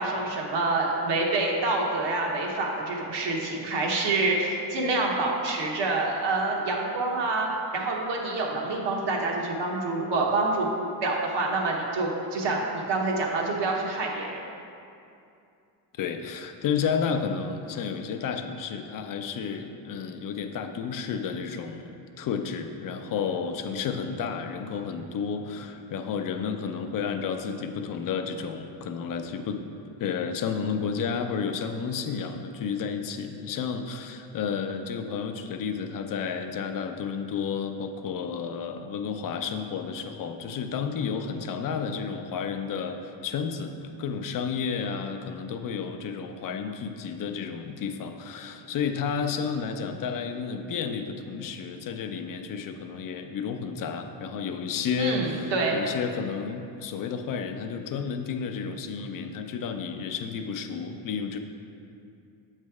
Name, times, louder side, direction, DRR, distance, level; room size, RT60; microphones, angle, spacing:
voice 1, 0.0-7.5 7.7-14.4 55.0-55.8, right 2 dB, 60° right, -1 dB, 1.2 m, -27 dB
voice 2, 16.0-29.6 30.0-61.4, left 6 dB, 45° left, 6 dB, 0.5 m, -31 dB
7.3 x 3.3 x 4.7 m, 2.6 s
cardioid pair, 105°, 48 cm